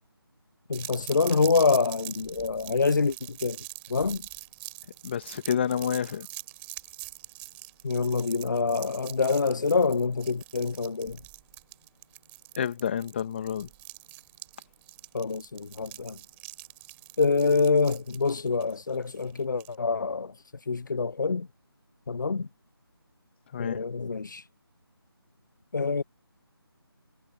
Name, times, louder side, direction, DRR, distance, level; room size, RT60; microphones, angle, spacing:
voice 1, 0.7-3.6 3.9-4.3 7.8-11.2 15.1-16.2 17.2-21.5 22.1-22.5 23.6-24.5 25.7-26.0, left 4 dB, 50° left, 0.9 m, -26 dB
sound 1, 0.7-19.8, right 22 dB, 10° right, 4.9 m, -44 dB
voice 2, 5.0-6.3 12.6-13.7 23.5-23.8, left 8 dB, 25° left, 2.7 m, -29 dB
figure-of-eight pair, 160°, 13 cm